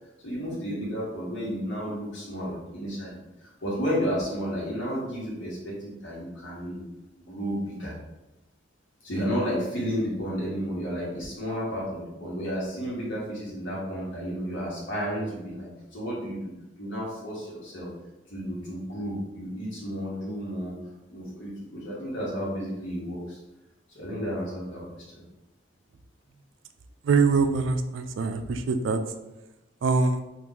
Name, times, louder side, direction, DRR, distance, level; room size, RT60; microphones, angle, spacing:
voice 1, 0.2-6.8 7.2-7.9 9.0-16.4 16.8-17.9 18.3-20.7 21.1-23.4 23.9-24.8 25.1-25.2, equal, 75° left, -7 dB, 1.4 m, -32 dB
voice 2, 27.0-29.0 29.8-30.2, right 4 dB, 90° right, 8 dB, 0.4 m, -23 dB
3.0 x 2.5 x 3.7 m, 1.0 s
head